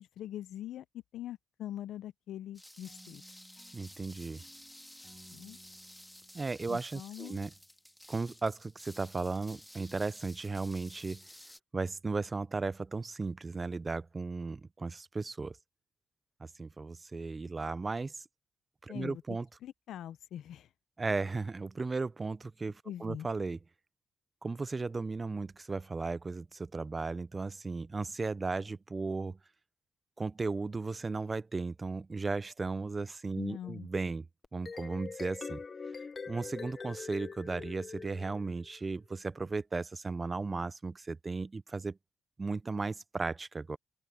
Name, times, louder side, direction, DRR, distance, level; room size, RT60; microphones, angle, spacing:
voice 1, 0.0-3.2 5.3-5.6 6.7-7.5 18.9-20.7 22.9-23.3 33.4-33.9, left 11 dB, 80° left, 0.7 m, -43 dB
sound 1, 2.5-11.6, left 1 dB, 5° left, 1.9 m, -53 dB
sound 2, 2.9-7.8, right 2 dB, 15° right, 5.2 m, -61 dB
voice 2, 3.7-4.4 6.3-7.5 8.1-11.3 11.7-15.6 16.6-18.2 18.8-19.5 21.0-23.6 24.4-29.4 30.2-34.3 34.5-35.6 36.3-42.0 42.4-43.8, right 3 dB, 30° right, 0.4 m, -35 dB
sound 3, 34.4-38.8, left 5 dB, 40° left, 0.7 m, -43 dB
open air
cardioid pair, 85°, 0 cm